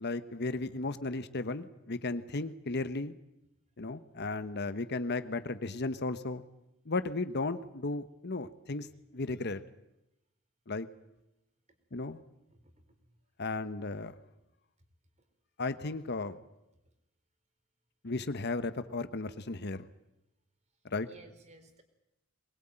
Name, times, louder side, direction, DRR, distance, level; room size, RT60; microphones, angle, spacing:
voice 1, 0.0-3.1 3.8-6.4 6.9-8.9 9.1-9.6 10.7-10.9 11.9-12.2 13.4-14.1 15.6-16.4 18.0-19.9 20.9-21.1, left 3 dB, 55° left, 11 dB, 1.1 m, -35 dB
voice 2, 12.5-13.2 21.0-21.8, right 1 dB, 35° right, 7 dB, 3.6 m, -58 dB
23.0 x 20.5 x 8.9 m, 0.91 s
head